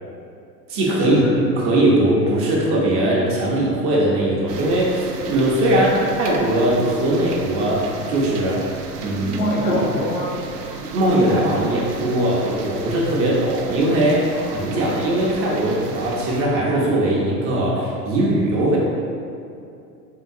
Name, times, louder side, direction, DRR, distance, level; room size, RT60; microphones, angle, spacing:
voice 1, 0.7-5.9 6.2-8.6 9.0-9.3 9.7-9.8 10.8-18.8, right 1 dB, 30° right, -4 dB, 0.7 m, -20 dB
sound 1, 4.5-16.4, right 4 dB, 70° right, 0.6 m, -34 dB
voice 2, 9.2-10.3 13.1-13.4 14.3-14.9, left 1 dB, 55° left, -3 dB, 1.0 m, -26 dB
3.8 x 3.7 x 2.6 m, 2.6 s
figure-of-eight pair, 90°, 49 cm